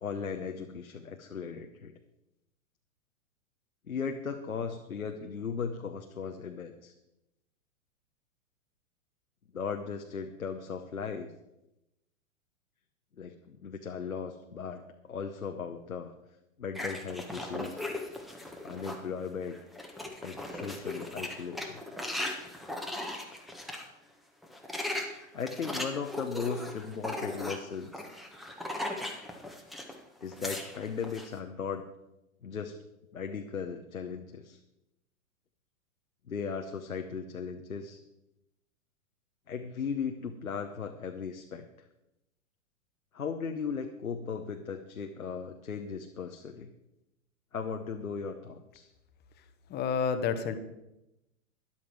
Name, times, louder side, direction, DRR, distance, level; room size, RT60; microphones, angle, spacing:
voice 1, 0.0-2.0 3.9-6.9 9.5-11.3 13.2-16.1 16.6-17.9 18.6-19.6 20.2-21.8 24.8-28.0 30.2-31.9 32.4-32.8 33.1-34.6 36.3-38.0 39.5-41.6 43.1-46.7 47.5-48.9, left 6 dB, 85° left, 5 dB, 1.0 m, -37 dB
sound 1, 16.8-19.1 19.5-23.9 24.4-30.0 30.2-31.3, left 1 dB, ahead, 1.4 m, -38 dB
voice 2, 49.7-50.6, left 6 dB, 25° left, 10 dB, 1.2 m, -29 dB
13.0 x 11.0 x 4.7 m, 0.92 s
figure-of-eight pair, 110°, 41 cm